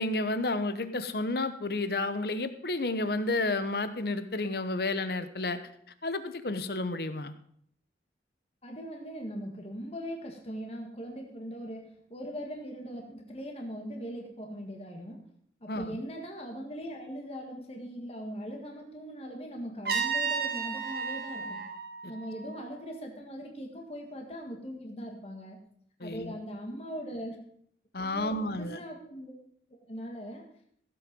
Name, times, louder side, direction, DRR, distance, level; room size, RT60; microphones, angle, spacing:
voice 1, 0.0-5.6 6.0-7.3 15.7-15.9 26.0-26.3 27.9-28.8, left 2 dB, 60° left, 11 dB, 1.0 m, -31 dB
voice 2, 8.6-15.3 15.6-21.7 22.1-25.6 26.0-27.4 28.1-29.4 29.9-30.4, equal, 35° left, 2 dB, 1.8 m, -40 dB
Trumpet, 19.9-22.8, right 5 dB, 60° right, 2.4 m, -33 dB
16.0 x 7.9 x 5.3 m, 0.64 s
head